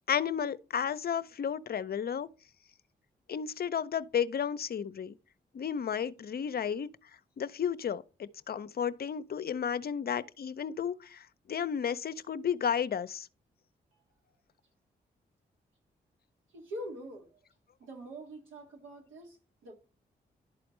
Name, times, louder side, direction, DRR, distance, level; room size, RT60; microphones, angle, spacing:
voice 1, 0.1-2.3 3.3-5.1 5.5-6.9 7.4-13.3, left 8 dB, 50° left, 0.6 m, -33 dB
voice 2, 16.5-17.4 17.8-19.7, right 1 dB, 80° right, 1.9 m, -44 dB
11.5 x 4.2 x 3.1 m
hypercardioid pair, 40°, 20 cm